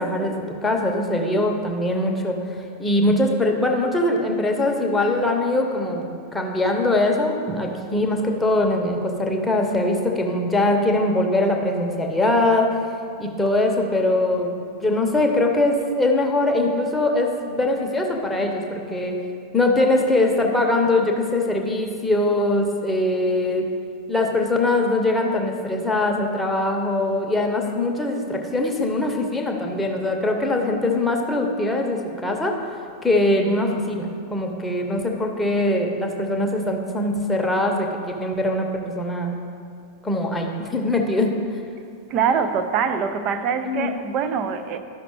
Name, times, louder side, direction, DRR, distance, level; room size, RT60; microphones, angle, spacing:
voice 1, 0.0-12.8 13.2-19.2 19.5-23.7 24.1-32.6 33.0-39.3 40.0-41.3 43.6-44.0, left 2 dB, 10° left, 1 dB, 0.9 m, -22 dB
voice 2, 7.5-7.8 42.1-44.8, right 6 dB, 40° right, 9 dB, 0.5 m, -24 dB
12.0 x 5.8 x 3.1 m, 2.4 s
figure-of-eight pair, 90°, 0 cm